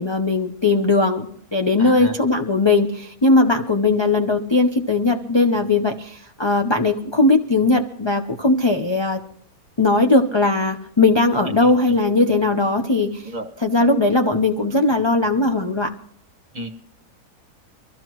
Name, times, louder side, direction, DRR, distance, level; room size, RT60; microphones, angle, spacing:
voice 1, 0.0-9.2 9.8-13.3 13.6-15.9, left 3 dB, 30° left, 5 dB, 0.5 m, -19 dB
voice 2, 1.8-2.1 11.4-11.7 13.2-13.5 16.5-16.7, right 2 dB, 30° right, 4 dB, 1.4 m, -31 dB
23.5 x 14.5 x 3.0 m, 0.66 s
omnidirectional pair, 1.6 m